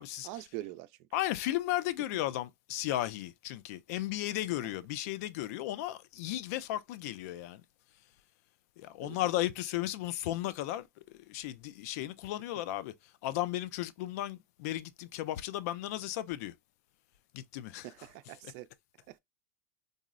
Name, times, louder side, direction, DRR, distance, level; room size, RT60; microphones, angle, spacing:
voice 1, 0.2-1.1 4.6-4.8 9.0-9.2 17.8-18.7 19.1-19.2, right 16 dB, 55° right, 0.4 m, -44 dB
voice 2, 1.1-7.6 8.8-10.9 11.3-12.9 13.2-16.5 17.3-17.9, left 14 dB, 70° left, 0.4 m, -35 dB
3.7 x 2.0 x 2.4 m
supercardioid pair, 120°, 9 cm